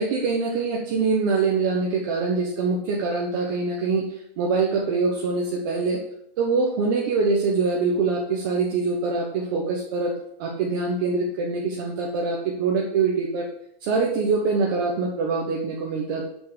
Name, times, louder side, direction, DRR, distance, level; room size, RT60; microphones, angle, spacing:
voice 1, 0.0-4.0 4.4-6.0 6.4-13.5 13.8-16.2, right 4 dB, 20° right, -1 dB, 1.2 m, -24 dB
8.6 x 7.6 x 8.2 m, 0.71 s
hypercardioid pair, 180°, 30 cm